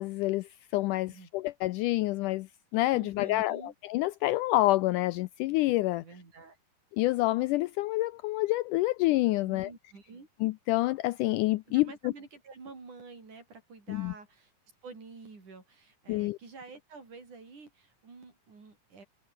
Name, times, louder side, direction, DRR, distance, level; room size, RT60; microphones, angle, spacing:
voice 1, 0.0-6.0 6.9-9.7 10.4-12.1 13.9-14.1 16.1-16.4, left 18 dB, 90° left, 1.8 m, -28 dB
voice 2, 2.9-3.7 6.0-6.6 9.4-10.3 11.7-14.5 14.8-19.0, right 4 dB, 55° right, 7.4 m, -49 dB
omnidirectional pair, 4.2 m